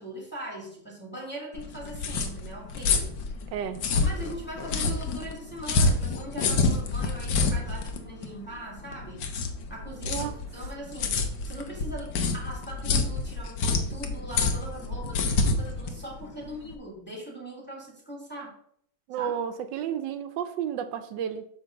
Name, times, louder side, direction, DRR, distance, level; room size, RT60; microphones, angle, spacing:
voice 1, 0.0-3.2 4.0-9.3 9.7-11.2 11.4-18.5 19.2-19.3, right 1 dB, 5° left, 2.3 m, -40 dB
sound 1, 1.5-16.7, left 3 dB, 90° left, 1.6 m, -28 dB
voice 2, 3.5-3.9 10.1-10.4 19.1-21.5, right 9 dB, 85° right, 1.3 m, -32 dB
8.4 x 3.5 x 6.3 m
omnidirectional pair, 1.9 m